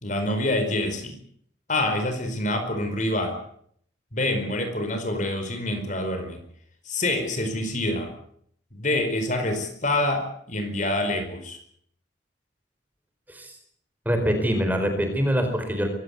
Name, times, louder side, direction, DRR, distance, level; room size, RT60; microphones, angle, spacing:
voice 1, 0.0-1.2 1.7-3.4 4.1-6.4 6.9-8.1 8.7-11.6, left 1 dB, 40° left, 7 dB, 4.7 m, -26 dB
voice 2, 14.0-15.9, equal, 10° right, 5 dB, 4.5 m, -24 dB
23.5 x 16.0 x 9.6 m, 0.66 s
head